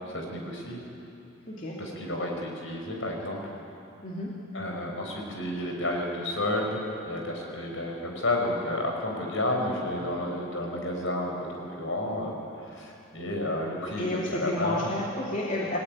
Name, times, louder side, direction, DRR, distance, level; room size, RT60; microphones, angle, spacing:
voice 1, 0.1-0.8 1.8-3.4 4.5-6.8 7.1-12.4 12.7-14.9 15.7-15.8, left 1 dB, 60° left, 1 dB, 5.9 m, -31 dB
voice 2, 1.5-1.8 4.0-4.4 14.0-15.8, left 1 dB, 35° left, -4 dB, 2.7 m, -31 dB
29.5 x 20.5 x 9.7 m, 2.8 s
head